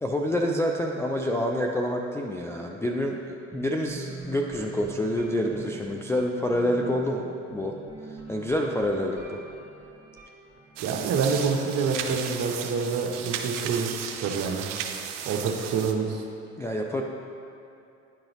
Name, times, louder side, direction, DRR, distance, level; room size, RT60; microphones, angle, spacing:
voice 1, 0.0-7.7 8.1-9.4 16.6-17.0, left 1 dB, 10° left, -1 dB, 0.3 m, -27 dB
sound 1, 3.5-13.3, right 3 dB, 10° right, 1.0 m, -45 dB
voice 2, 10.8-14.7 15.3-16.2, right 5 dB, 45° right, 2 dB, 0.8 m, -27 dB
sound 2, 10.8-15.9, right 8 dB, 80° right, 0.5 m, -35 dB
9.9 x 3.8 x 3.0 m, 2.7 s
hypercardioid pair, 65°, 36 cm